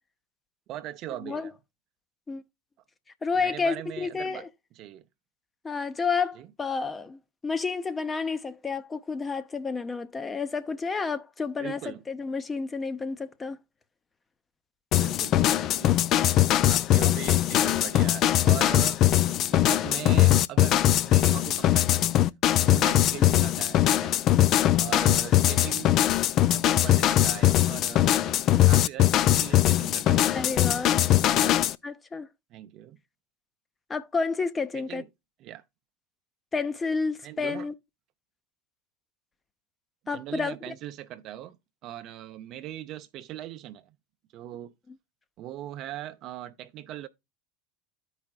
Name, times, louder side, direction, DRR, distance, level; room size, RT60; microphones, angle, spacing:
voice 1, 0.7-1.5 3.3-4.5 4.8-5.1 6.4-6.5 11.6-12.0 14.9-19.0 19.3-22.2 22.6-24.2 24.8-26.0 26.5-28.4 28.7-30.3 31.2-31.6 32.5-33.0 34.7-35.1 35.4-35.6 37.2-37.7 40.1-41.6 41.8-44.0 44.3-44.7 45.4-47.1, right 12 dB, 50° right, 0.6 m, -40 dB
voice 2, 3.2-4.5 5.6-13.6 23.2-23.3 30.3-31.0 31.8-32.3 33.9-35.0 36.5-37.7 40.1-40.6, left 4 dB, 20° left, 0.7 m, -30 dB
sound 1, 14.9-31.8, left 13 dB, 50° left, 0.4 m, -21 dB
14.0 x 4.9 x 2.3 m
hypercardioid pair, 80°, 0 cm